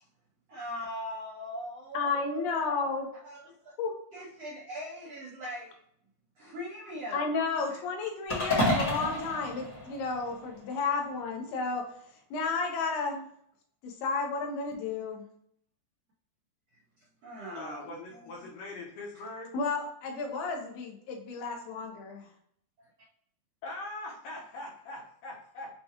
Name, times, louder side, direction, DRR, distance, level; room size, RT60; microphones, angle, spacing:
voice 1, 0.5-2.9 3.2-3.7 4.1-5.8 6.4-7.4 7.7-7.8 16.7-16.8 17.2-18.5 22.8-22.9, equal, 80° right, -7 dB, 1.4 m, -41 dB
voice 2, 1.9-3.1 3.8-3.9 7.1-11.8 12.3-13.3 13.8-15.2 19.5-22.3, left 4 dB, 90° left, 2 dB, 2.9 m, -32 dB
sound 1, 8.3-10.6, left 1 dB, 45° left, 1.1 m, -30 dB
voice 3, 17.5-19.5 23.6-25.7, left 2 dB, 70° left, -2 dB, 2.1 m, -42 dB
6.7 x 2.3 x 2.9 m, 0.68 s
omnidirectional pair, 4.5 m